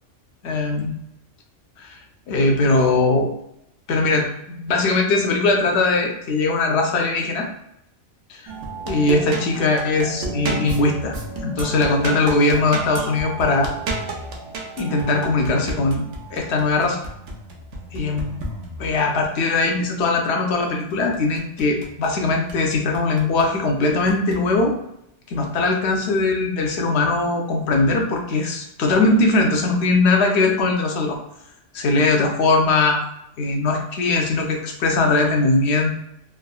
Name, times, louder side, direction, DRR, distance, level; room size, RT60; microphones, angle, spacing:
voice 1, 0.4-1.0 1.8-2.0 2.3-3.3 3.9-4.3 4.6-7.5 8.3-8.4 8.9-11.2 11.4-13.7 14.8-16.0 16.3-17.0 17.9-18.3 18.8-24.7 25.3-31.2 31.7-33.0 33.4-36.0, left 3 dB, 70° left, 2 dB, 0.8 m, -20 dB
sound 1, 8.5-19.1 20.9-22.1 22.5-23.5 24.1-24.4, right 2 dB, 85° right, 0.9 m, -32 dB
3.5 x 2.0 x 2.2 m, 0.78 s
omnidirectional pair, 1.2 m